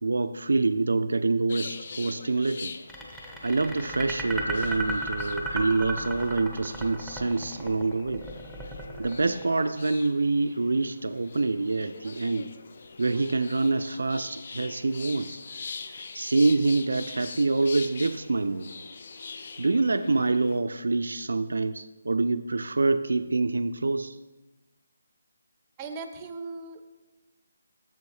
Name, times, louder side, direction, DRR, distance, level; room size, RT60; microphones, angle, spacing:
voice 1, 0.0-2.7 3.4-8.3 9.0-12.5 13.0-15.4 16.1-18.7 19.6-24.2, right 3 dB, 70° right, 9 dB, 0.3 m, -26 dB
sound 1, 1.5-20.6, left 4 dB, 50° left, 0.4 m, -44 dB
sound 2, 2.9-10.0, right 1 dB, 5° left, 0.9 m, -35 dB
voice 2, 25.8-26.8, right 4 dB, 20° right, 8 dB, 0.6 m, -38 dB
7.9 x 7.0 x 3.1 m, 1.1 s
figure-of-eight pair, 150°, 0 cm